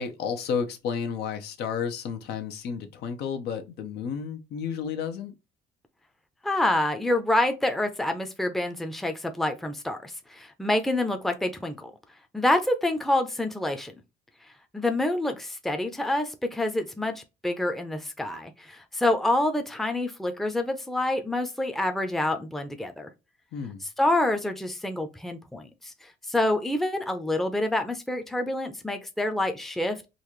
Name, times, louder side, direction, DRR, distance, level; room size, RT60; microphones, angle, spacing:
voice 1, 0.0-5.3 23.5-23.8, left 6 dB, 75° left, 0.8 m, -32 dB
voice 2, 6.4-11.9 12.3-13.9 14.7-23.1 24.0-30.1, left 1 dB, ahead, 0.6 m, -27 dB
3.9 x 2.5 x 3.0 m
cardioid pair, 110°, 17 cm